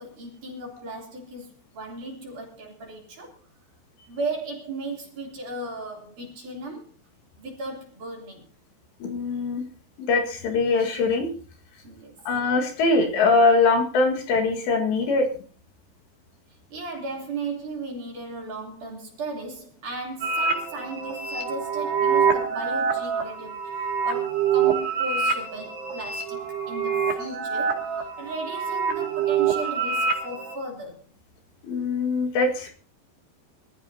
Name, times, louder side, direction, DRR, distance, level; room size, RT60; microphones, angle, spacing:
voice 1, 0.0-3.3 4.1-6.9 7.4-8.5 11.8-12.2 16.7-26.4 26.7-31.0, right 2 dB, 45° right, -1 dB, 4.3 m, -36 dB
voice 2, 9.0-9.6 10.0-11.3 12.3-15.3 31.6-32.7, left 3 dB, 70° left, 2 dB, 3.8 m, -22 dB
sound 1, 20.2-30.6, right 6 dB, 65° right, 4.0 m, -26 dB
25.5 x 13.5 x 2.7 m, 0.40 s
omnidirectional pair, 5.4 m